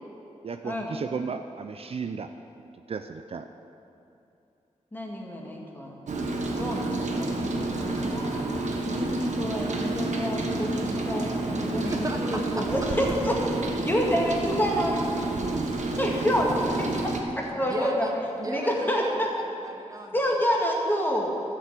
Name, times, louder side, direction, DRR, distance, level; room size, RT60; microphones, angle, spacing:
voice 1, 0.4-2.3 2.9-3.5, right 5 dB, 55° right, 8 dB, 0.5 m, -34 dB
voice 2, 4.9-5.9 6.5-8.5 8.9-13.4 13.8-15.5 16.0-16.9 17.4-18.1 18.5-19.3 20.1-21.3, equal, 15° left, -2 dB, 2.1 m, -28 dB
Rain, 6.1-17.2, right 2 dB, 80° right, 1.3 m, -29 dB
voice 3, 11.8-12.7 17.6-20.4, right 1 dB, 30° right, 2 dB, 1.1 m, -37 dB
12.5 x 7.5 x 7.6 m, 2.7 s
wide cardioid pair, 110°, 12 cm